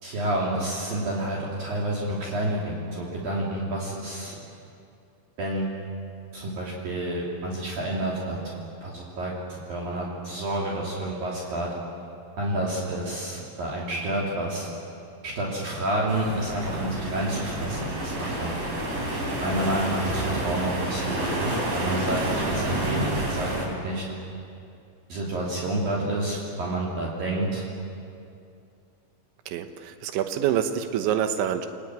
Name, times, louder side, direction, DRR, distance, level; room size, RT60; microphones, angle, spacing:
voice 1, 0.0-4.4 5.4-5.7 6.3-11.7 12.4-14.7 15.2-18.6 19.4-24.1 25.1-27.7, right 1 dB, 55° right, -4 dB, 4.5 m, -29 dB
sound 1, 16.1-23.7, right 1 dB, 35° right, 5.4 m, -29 dB
voice 2, 29.5-31.7, right 10 dB, 90° right, 7 dB, 3.5 m, -26 dB
30.0 x 20.5 x 9.2 m, 2.5 s
omnidirectional pair, 5.2 m